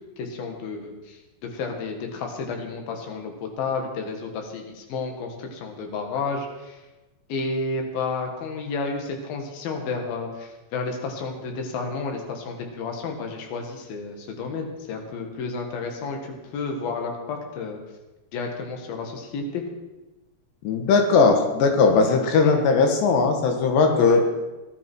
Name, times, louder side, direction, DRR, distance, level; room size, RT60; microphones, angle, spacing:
voice 1, 0.2-6.8 7.3-17.8 18.3-19.6 22.4-22.5 23.9-24.4, left 4 dB, 65° left, 2 dB, 3.4 m, -31 dB
voice 2, 20.7-24.2, left 4 dB, 90° left, 4 dB, 3.7 m, -18 dB
18.5 x 12.5 x 4.6 m, 1.1 s
omnidirectional pair, 4.8 m